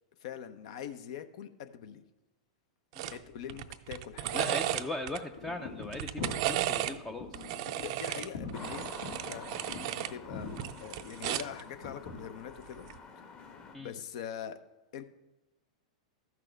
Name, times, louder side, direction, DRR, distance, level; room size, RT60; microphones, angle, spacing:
voice 1, 0.2-2.0 3.0-4.5 7.8-9.5 9.9-12.9 13.8-14.6 14.9-15.0, left 9 dB, 60° left, 10 dB, 0.7 m, -43 dB
sound 1, 3.0-3.2 3.5-5.2 5.8-7.0 7.3-10.1 10.5-11.6 12.8-13.0, right 13 dB, 55° right, 0.4 m, -34 dB
voice 2, 4.3-7.5 13.7-13.9, left 2 dB, 10° left, 6 dB, 0.5 m, -39 dB
sound 2, 5.3-12.4, left 4 dB, 80° left, 2.4 m, -44 dB
sound 3, 8.5-13.8, left 5 dB, 30° left, 1.3 m, -48 dB
13.5 x 6.0 x 3.4 m, 1.1 s
hypercardioid pair, 115°, 4 cm